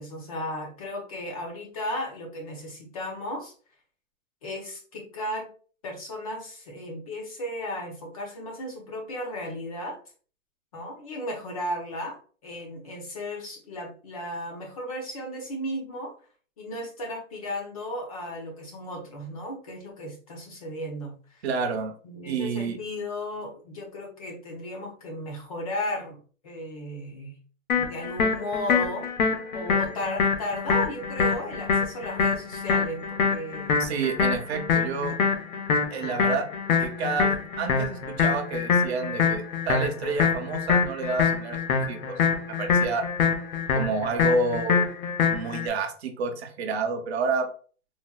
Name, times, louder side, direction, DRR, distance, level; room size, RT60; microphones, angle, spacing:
voice 1, 0.0-3.5 4.4-5.5 5.8-10.0 10.7-16.1 16.6-21.4 22.0-26.2 26.4-27.4 27.8-29.1 29.5-33.7, left 1 dB, 25° left, 1 dB, 0.6 m, -35 dB
voice 2, 21.4-21.9 22.3-22.8 33.8-35.2 35.9-36.5 36.8-41.6 41.8-42.2 42.6-43.1 43.7-44.9 45.3-47.5, right 4 dB, 50° right, 6 dB, 0.7 m, -29 dB
sound 1, 27.7-45.7, left 5 dB, 90° left, 0.9 m, -25 dB
4.0 x 2.1 x 2.2 m, 0.40 s
hypercardioid pair, 170°, 41 cm